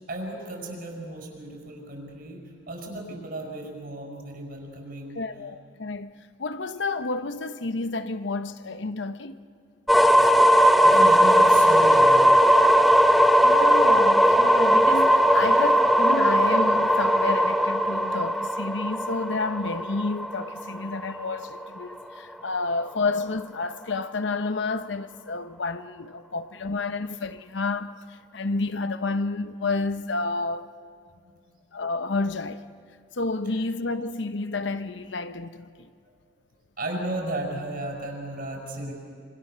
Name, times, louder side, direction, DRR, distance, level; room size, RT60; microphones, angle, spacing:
voice 1, 0.1-5.2 10.1-10.5 10.8-12.4 31.2-31.4 33.5-33.6 36.8-38.9, right 1 dB, 55° right, 6.3 m, -35 dB
voice 2, 5.1-9.4 13.4-27.9 28.3-30.7 31.7-32.6 33.1-35.9, left 3 dB, 80° left, 0.9 m, -30 dB
sound 1, 9.9-21.7, equal, ahead, 0.8 m, -18 dB
26.5 x 25.5 x 6.8 m
head